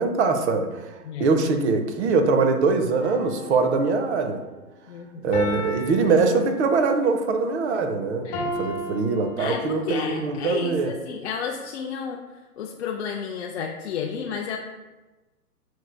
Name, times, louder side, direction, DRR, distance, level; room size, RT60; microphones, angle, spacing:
voice 1, 0.0-0.9 1.2-4.4 5.2-8.2 8.6-10.9, right 4 dB, 45° right, 6 dB, 0.6 m, -22 dB
sound 1, 3.0-4.3 5.3-7.0 8.3-10.0 10.7-10.8, equal, 25° left, 0.9 m, -34 dB
voice 2, 4.9-5.4 8.2-8.5 9.4-12.2 12.6-14.6, left 6 dB, 50° left, 0 dB, 0.4 m, -32 dB
6.0 x 3.2 x 2.2 m, 1.1 s
hypercardioid pair, 135°, 46 cm